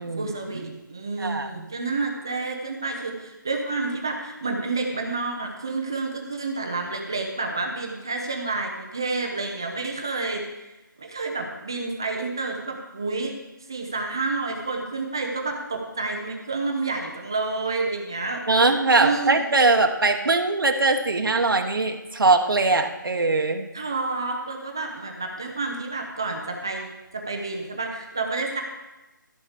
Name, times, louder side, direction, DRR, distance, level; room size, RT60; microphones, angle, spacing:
voice 1, 0.0-10.4 11.0-13.3 13.7-18.4 19.0-19.5 23.7-26.9 27.1-28.6, right 3 dB, 10° right, 2 dB, 0.5 m, -29 dB
voice 2, 1.2-1.7 18.5-23.7, right 3 dB, 90° right, 4 dB, 1.3 m, -21 dB
14.0 x 4.7 x 7.0 m, 1.0 s
hypercardioid pair, 180°, 11 cm